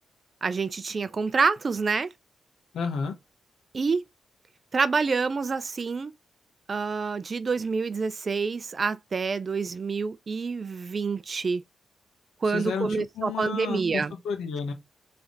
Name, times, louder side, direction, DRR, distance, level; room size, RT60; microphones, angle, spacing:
voice 1, 0.4-2.1 3.7-4.0 4.7-6.1 6.7-11.6 12.4-14.1, right 4 dB, 45° right, 0.5 m, -27 dB
voice 2, 2.7-3.2 12.5-12.9 13.2-14.7, left 6 dB, 90° left, 1.3 m, -31 dB
3.5 x 3.3 x 3.9 m
cardioid pair, 80°, 0 cm